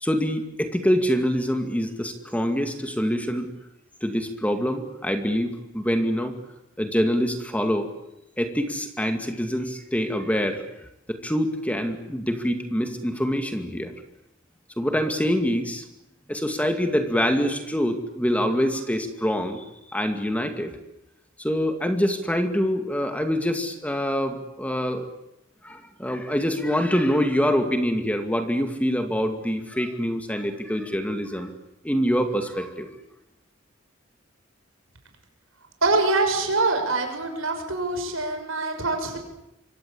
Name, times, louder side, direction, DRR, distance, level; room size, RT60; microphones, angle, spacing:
voice 1, 0.0-3.5 4.0-6.4 6.8-7.9 8.4-10.6 11.1-13.9 14.8-15.8 16.3-19.6 19.9-20.7 21.4-25.1 25.6-31.5 31.8-32.9, equal, 5° left, 6 dB, 2.3 m, -25 dB
voice 2, 35.8-39.2, right 3 dB, 85° right, 5 dB, 6.4 m, -24 dB
27.0 x 24.0 x 8.6 m, 0.86 s
head